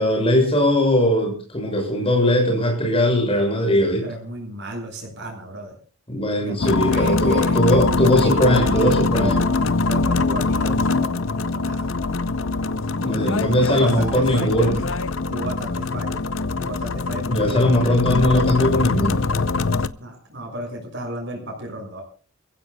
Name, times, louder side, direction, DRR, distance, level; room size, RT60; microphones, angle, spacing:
voice 1, 0.0-4.1 6.1-9.4 13.0-14.8 17.3-19.2, left 1 dB, 25° left, 2 dB, 6.7 m, -19 dB
voice 2, 4.0-5.8 6.4-11.9 13.0-14.5 15.3-16.2 16.6-17.8 20.0-22.0, equal, 55° right, 1 dB, 6.4 m, -33 dB
sound 1, 6.6-19.9, left 3 dB, 60° left, 0.7 m, -23 dB
28.5 x 15.5 x 2.3 m, 0.37 s
head